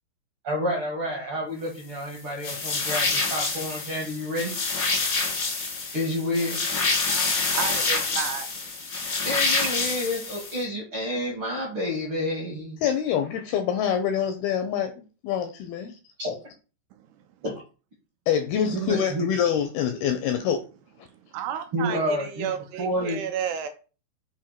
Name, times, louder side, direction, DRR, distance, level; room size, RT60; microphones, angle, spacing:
voice 1, 0.4-4.6 5.9-6.8 9.2-12.8 16.2-16.3 17.4-17.5 18.7-19.3 21.7-22.5 22.8-23.2, left 1 dB, 65° right, 1.3 m, -29 dB
sound 1, 2.4-10.6, left 3 dB, 70° left, 1.0 m, -27 dB
voice 2, 7.1-8.7 21.3-23.7, right 9 dB, 80° right, 2.5 m, -32 dB
voice 3, 12.8-14.9 15.2-15.9 18.3-20.6, left 8 dB, 85° left, 2.2 m, -25 dB
7.2 x 2.7 x 5.6 m
omnidirectional pair, 5.1 m